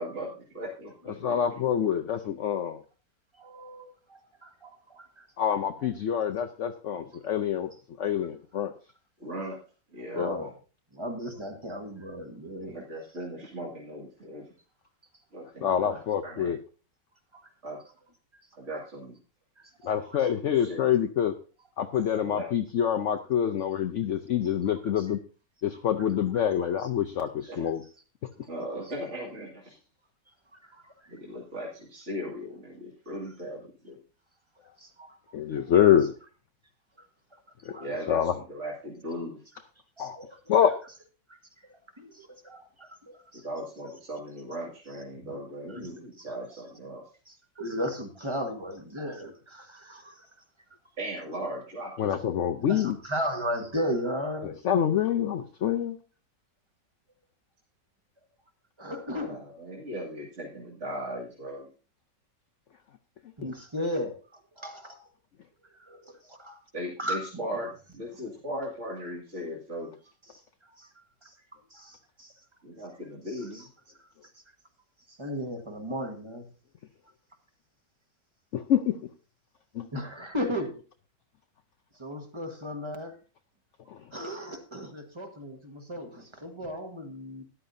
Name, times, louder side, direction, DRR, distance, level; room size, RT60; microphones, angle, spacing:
voice 1, 0.0-1.3 9.2-9.6 9.9-10.3 12.7-14.5 15.3-16.5 17.6-17.8 18.6-19.2 20.4-20.8 22.2-22.5 27.5-27.6 28.5-29.6 31.1-34.0 37.8-39.4 43.3-47.0 51.0-52.4 59.3-61.7 66.7-69.9 72.6-73.7, equal, 40° right, -4 dB, 2.6 m, -38 dB
voice 2, 1.1-2.8 5.4-7.7 8.0-8.7 10.2-10.4 15.6-16.6 19.8-21.3 21.8-25.2 25.6-27.8 35.3-36.1 37.6-37.8 38.1-38.3 40.0-40.2 40.5-40.7 52.0-53.0 54.4-56.0 63.4-63.5 78.5-79.0 79.7-79.9 83.9-84.0, left 9 dB, 70° left, 7 dB, 0.7 m, -26 dB
voice 3, 3.3-5.3 10.1-10.5 10.9-12.8 17.3-17.4 19.6-19.7 20.1-20.2 25.0-25.1 25.7-26.1 26.8-26.9 28.8-29.0 30.5-31.2 34.8-35.1 37.0-37.1 37.3-37.4 37.7-38.1 40.0-40.4 41.3-41.7 41.9-43.5 45.2-45.4 45.7-45.9 46.2-46.6 47.3-50.3 52.7-54.6 58.8-59.5 63.4-65.1 65.6-66.6 67.0-67.4 70.3-72.4 73.3-73.7 74.0-74.4 75.1-76.5 79.9-80.8 81.9-83.2 84.1-87.4, equal, 15° right, 5 dB, 1.3 m, -36 dB
13.5 x 11.0 x 2.7 m, 0.35 s
omnidirectional pair, 2.0 m